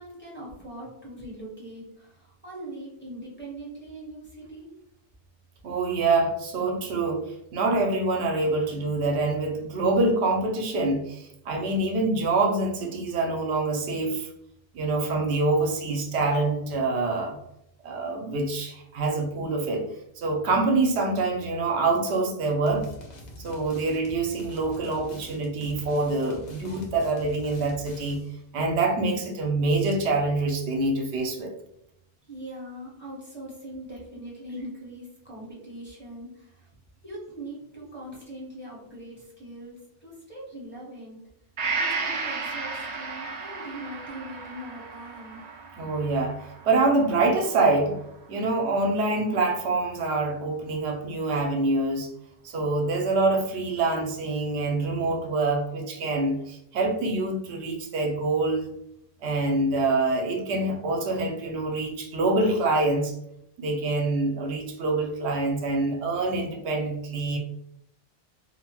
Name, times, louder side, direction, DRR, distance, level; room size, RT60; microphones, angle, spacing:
voice 1, 0.0-4.7 32.3-36.7 37.0-41.2 41.8-45.4, right 1 dB, 10° left, -6 dB, 0.7 m, -41 dB
voice 2, 5.6-7.2 7.5-14.3 14.7-17.4 17.8-19.8 20.2-22.9 23.4-28.2 28.5-31.5 45.8-46.4 46.6-48.0 48.3-52.1 52.4-58.7 59.2-63.1 63.6-67.4, right 2 dB, 85° right, 2 dB, 0.9 m, -25 dB
sound 1, 22.7-28.4, left 1 dB, 50° left, 0.6 m, -45 dB
Gong, 41.6-49.2 49.6-49.7, right 4 dB, 55° right, 0.5 m, -35 dB
2.7 x 2.1 x 2.9 m, 0.76 s
omnidirectional pair, 1.1 m